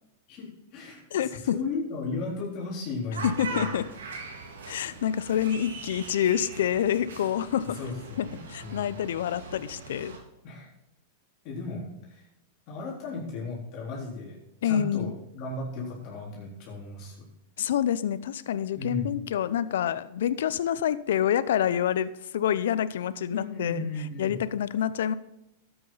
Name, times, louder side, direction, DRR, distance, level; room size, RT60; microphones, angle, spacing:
voice 1, 0.3-3.7 7.7-9.0 10.4-10.7 11.4-12.3 12.7-14.4 14.6-17.2 18.8-19.1 23.3-24.4, left 3 dB, 50° left, -3 dB, 3.8 m, -35 dB
voice 2, 1.1-1.6 3.2-3.9 4.7-7.8 8.2-10.2 14.6-15.1 17.6-23.8 24.2-25.1, left 10 dB, 75° left, 16 dB, 0.7 m, -27 dB
sound 1, 3.1-10.2, right 4 dB, 85° right, 3.3 m, -41 dB
12.5 x 8.8 x 4.1 m, 0.86 s
hypercardioid pair, 110°, 0 cm